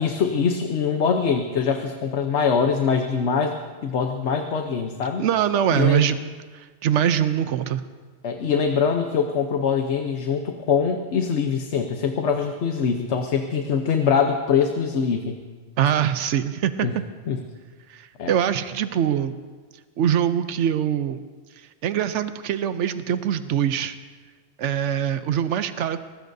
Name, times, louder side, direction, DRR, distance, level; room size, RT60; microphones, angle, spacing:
voice 1, 0.0-5.2 5.7-6.1 8.2-15.4 16.8-17.0 17.3-17.4 18.2-18.3, left 6 dB, 75° left, 5 dB, 1.1 m, -23 dB
voice 2, 5.2-6.2 6.5-7.8 15.8-16.9 17.9-19.4 20.0-21.2 21.6-24.0 24.6-26.0, right 9 dB, 90° right, 11 dB, 1.0 m, -23 dB
24.0 x 19.5 x 2.7 m, 1.4 s
omnidirectional pair, 1.2 m